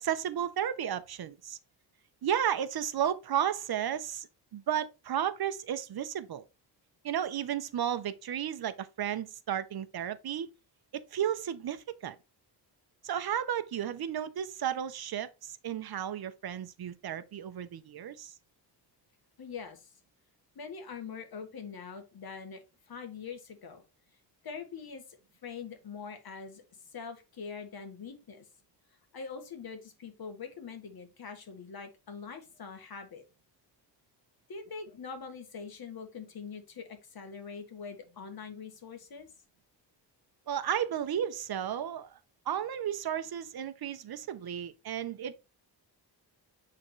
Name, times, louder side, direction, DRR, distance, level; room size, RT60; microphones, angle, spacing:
voice 1, 0.0-1.6 2.2-6.4 7.0-10.5 10.9-12.2 13.0-18.3 40.5-42.2 42.5-45.4, right 9 dB, 60° right, 0.7 m, -33 dB
voice 2, 19.4-19.9 20.5-23.8 24.4-25.0 25.4-28.5 29.1-33.2 34.5-39.3, left 5 dB, 60° left, 1.6 m, -43 dB
8.6 x 3.8 x 3.1 m
wide cardioid pair, 140°, 41 cm